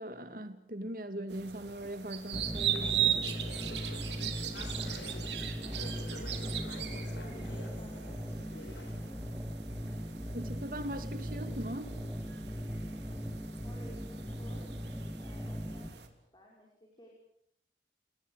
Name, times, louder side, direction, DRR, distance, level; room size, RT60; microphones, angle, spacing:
voice 1, 0.0-3.3 10.3-12.0, right 1 dB, 50° right, 9 dB, 2.6 m, -40 dB
sound 1, 1.3-16.1, right 10 dB, 80° right, 3.2 m, -39 dB
Conversation / Chatter, 2.3-9.0, left 1 dB, 90° left, 4.8 m, -48 dB
sound 2, 2.3-15.9, equal, 5° right, 2.1 m, -39 dB
voice 2, 4.5-9.4 9.8-10.2 12.7-17.1, equal, 25° left, -1 dB, 5.5 m, -57 dB
29.5 x 19.5 x 8.3 m, 0.74 s
head